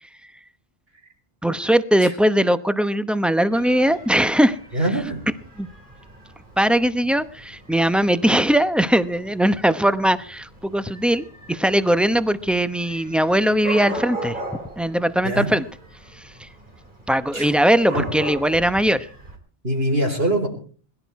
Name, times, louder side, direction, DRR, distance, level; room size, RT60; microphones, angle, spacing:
voice 1, 1.4-4.6 5.6-5.7 6.6-14.4 14.8-15.7 17.1-19.1, right 1 dB, ahead, 12 dB, 0.8 m, -20 dB
Dog / Cat, 3.5-19.4, right 1 dB, 50° right, 3.3 m, -39 dB
voice 2, 4.7-5.3 15.2-15.5 17.3-17.5 17.9-18.1 19.6-20.5, right 1 dB, 70° right, 3 dB, 4.8 m, -23 dB
21.5 x 12.5 x 4.7 m, 0.42 s
omnidirectional pair, 1.1 m